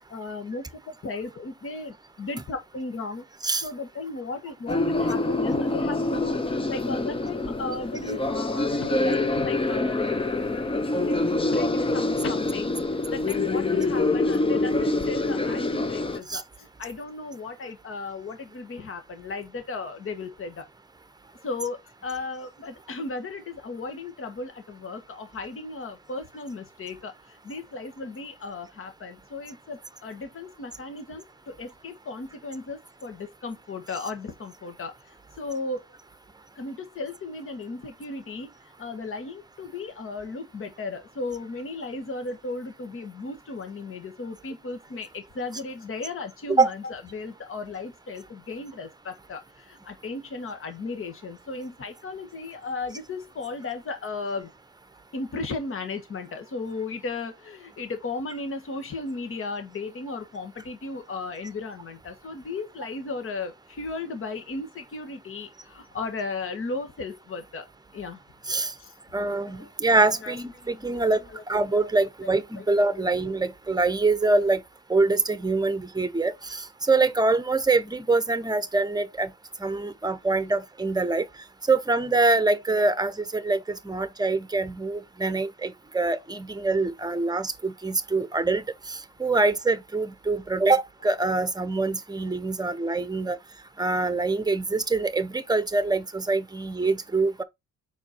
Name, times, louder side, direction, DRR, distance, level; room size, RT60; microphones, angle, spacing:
voice 1, 0.1-3.2 3.6-6.4 6.7-12.8 13.1-20.6 21.4-34.9 35.4-35.8 36.6-38.5 38.8-54.5 55.1-67.6 67.9-68.2 68.8-68.9 69.4-69.7 70.2-70.7 71.3-71.4 71.8-71.9 72.6-72.7 72.9-73.1 80.4-80.5, left 3 dB, 45° left, 1.6 m, -35 dB
sound 1, 4.7-16.2, left 2 dB, 20° left, 0.7 m, -26 dB
voice 2, 69.1-71.2 71.5-74.6 74.9-79.3 79.6-81.3 81.7-93.4 93.8-97.4, right 3 dB, 15° right, 1.0 m, -24 dB
6.2 x 4.5 x 4.3 m
cardioid pair, 90°, 30 cm